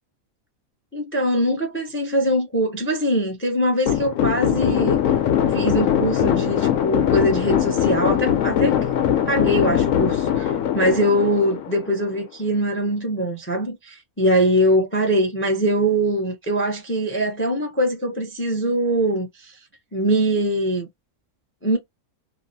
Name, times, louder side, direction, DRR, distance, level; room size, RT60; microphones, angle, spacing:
voice 1, 0.9-5.0 5.5-8.8 9.3-19.5 19.9-20.9 21.6-21.8, right 1 dB, 20° left, 0.3 m, -22 dB
sound 1, 3.9-12.1, left 10 dB, 70° left, 0.9 m, -21 dB
2.9 x 2.0 x 2.5 m
omnidirectional pair, 1.6 m